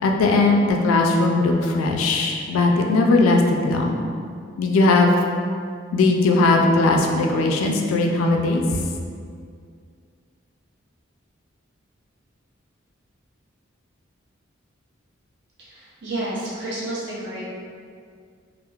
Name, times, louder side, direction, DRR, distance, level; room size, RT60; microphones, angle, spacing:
voice 1, 0.0-4.0 4.6-5.1 5.9-8.6, left 3 dB, 85° left, 2 dB, 0.3 m, -19 dB
voice 2, 15.6-17.4, right 1 dB, 60° right, -8 dB, 0.7 m, -30 dB
2.9 x 2.0 x 2.3 m, 2.2 s
head